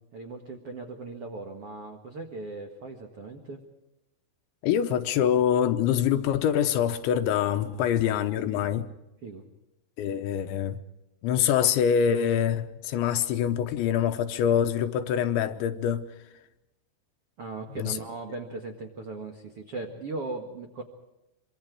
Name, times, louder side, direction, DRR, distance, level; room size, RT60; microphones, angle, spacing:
voice 1, 0.0-3.6 7.6-7.9 9.2-9.4 17.4-20.8, right 3 dB, 70° right, 1.4 m, -38 dB
voice 2, 4.6-8.9 10.0-10.8 11.2-16.1 17.7-18.0, left 9 dB, 80° left, 3.1 m, -25 dB
25.0 x 25.0 x 4.8 m
omnidirectional pair, 5.6 m